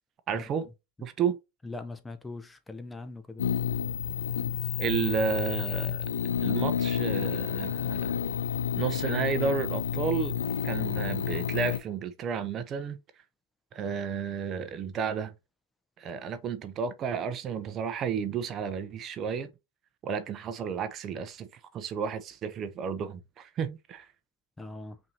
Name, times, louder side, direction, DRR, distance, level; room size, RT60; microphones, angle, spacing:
voice 1, 0.3-0.7 1.0-1.4 4.8-6.0 6.4-8.2 8.7-10.3 10.6-13.0 13.7-15.3 16.0-19.5 20.0-21.5 21.7-24.1, right 6 dB, 35° right, 0.5 m, -32 dB
voice 2, 1.6-3.5 24.6-25.0, left 2 dB, 10° left, 0.6 m, -41 dB
sound 1, 3.4-11.8, left 8 dB, 85° left, 0.5 m, -30 dB
5.4 x 2.7 x 2.8 m
hypercardioid pair, 100°, 0 cm